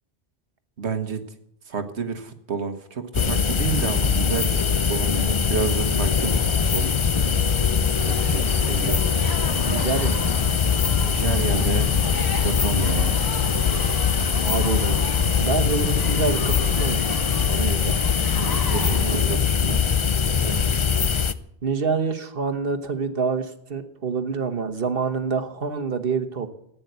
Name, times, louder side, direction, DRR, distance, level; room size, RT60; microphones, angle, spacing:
voice 1, 0.8-1.2 1.7-7.0 8.1-9.1 11.0-11.9 12.4-13.3 18.4-19.8 20.4-20.8, right 5 dB, 80° right, 8 dB, 1.6 m, -30 dB
sound 1, 3.1-21.3, left 6 dB, 40° left, 0.5 m, -22 dB
sound 2, 6.0-17.1, left 4 dB, 85° left, 1.5 m, -33 dB
sound 3, 8.0-19.2, left 2 dB, 20° left, 1.4 m, -37 dB
voice 2, 9.7-10.5 14.4-14.9 15.4-17.2 17.5-18.0 18.8-19.3 21.6-26.5, right 5 dB, 60° right, 8 dB, 1.4 m, -27 dB
14.5 x 9.6 x 8.0 m, 0.73 s
omnidirectional pair, 1.1 m